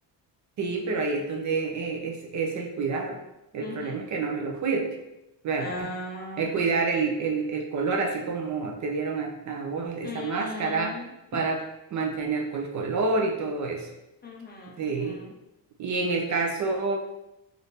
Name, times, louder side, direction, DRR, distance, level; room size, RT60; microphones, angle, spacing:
voice 1, 0.6-3.2 3.5-4.9 5.4-5.9 6.4-10.9 11.3-11.6 11.9-13.9 14.8-15.2 15.8-17.0, right 4 dB, 50° right, 1 dB, 0.6 m, -28 dB
voice 2, 3.6-3.9 5.6-6.5 10.0-11.1 14.2-15.3, left 2 dB, 25° left, -2 dB, 0.6 m, -38 dB
3.5 x 2.6 x 4.0 m, 0.91 s
cardioid pair, 170°, 38 cm